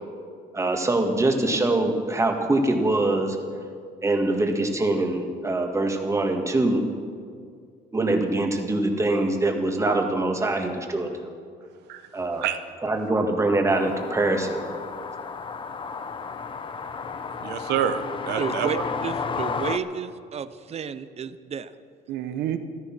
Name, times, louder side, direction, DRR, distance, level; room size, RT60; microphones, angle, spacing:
voice 1, 0.5-3.4 4.0-6.8 7.9-11.3 12.1-12.4 12.8-14.6, right 2 dB, 15° right, 3 dB, 1.9 m, -23 dB
sound 1, 13.7-19.8, left 5 dB, 30° left, 0.8 m, -32 dB
voice 2, 17.4-18.8 22.1-22.6, right 9 dB, 80° right, 9 dB, 1.1 m, -27 dB
voice 3, 18.4-21.7, right 6 dB, 40° right, 14 dB, 0.7 m, -32 dB
14.5 x 13.0 x 6.1 m, 2.2 s
cardioid pair, 110°, 17 cm